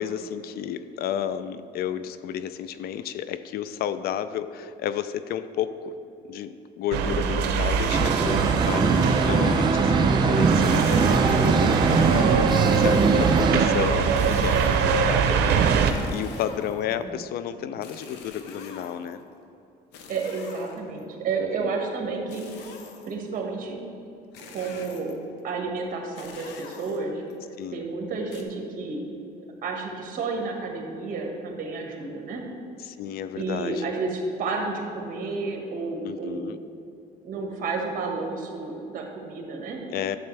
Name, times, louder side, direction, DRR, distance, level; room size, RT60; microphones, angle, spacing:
voice 1, 0.0-5.9 6.3-15.5 15.8-19.2 21.6-21.7 27.6-27.8 32.8-33.9 36.0-36.6 39.9-40.2, left 9 dB, 65° left, 13 dB, 0.4 m, -32 dB
sound 1, 6.9-15.9, right 6 dB, 85° right, 0.7 m, -23 dB
sound 2, 7.9-13.7, right 4 dB, 25° right, 0.5 m, -21 dB
sound 3, 10.5-11.8 12.5-13.6 14.1-15.1 15.9-17.1 17.8-19.2 19.9-21.0 22.3-23.2 24.3-25.3 26.2-27.3 28.3-28.4, left 4 dB, 85° left, 0.9 m, -43 dB
voice 2, 20.1-22.4 23.0-23.8 24.4-25.1 25.4-27.2 27.7-29.0 29.4-32.4 33.4-36.4 37.2-39.8, right 4 dB, 55° right, 1 dB, 1.6 m, -31 dB
11.0 x 7.1 x 3.3 m, 2.7 s
cardioid pair, 110°, 17 cm